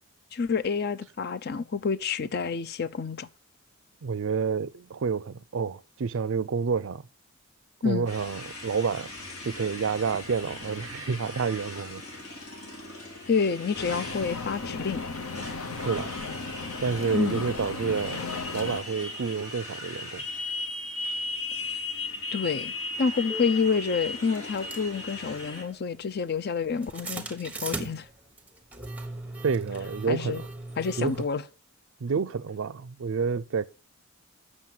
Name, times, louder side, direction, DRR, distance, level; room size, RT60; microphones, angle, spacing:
voice 1, 0.3-3.3 7.8-8.1 13.3-15.0 17.1-17.4 22.3-22.7 23.0-28.1 30.1-30.4 30.8-31.4, left 5 dB, 50° left, 0.5 m, -28 dB
voice 2, 4.0-7.0 7.8-9.1 9.4-12.0 15.8-16.1 16.8-18.2 18.5-20.2 29.4-30.5 31.0-31.1 32.0-33.7, right 5 dB, 60° right, 0.4 m, -29 dB
Motorcycle, 8.1-25.6, left 2 dB, 90° left, 3.9 m, -38 dB
sound 1, 13.7-18.8, left 3 dB, 75° left, 0.9 m, -36 dB
sound 2, 22.3-22.4 23.3-23.4 24.3-31.3, right 2 dB, 5° right, 1.1 m, -39 dB
7.5 x 6.4 x 7.6 m
head